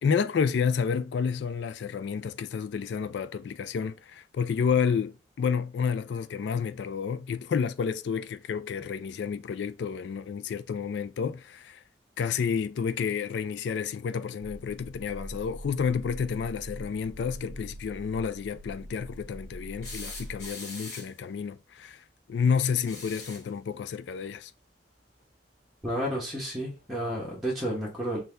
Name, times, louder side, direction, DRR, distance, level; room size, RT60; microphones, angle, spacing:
voice 1, 0.0-11.8 12.2-22.0 22.3-24.5, left 6 dB, 70° left, 0.3 m, -30 dB
sound 1, 14.4-20.5, right 1 dB, 90° right, 0.5 m, -43 dB
sound 2, 19.8-21.3 22.8-23.5 25.2-25.3 26.8-26.9, left 3 dB, 40° left, 1.6 m, -42 dB
voice 2, 25.8-28.2, equal, ahead, 1.0 m, -31 dB
5.5 x 2.3 x 3.3 m
head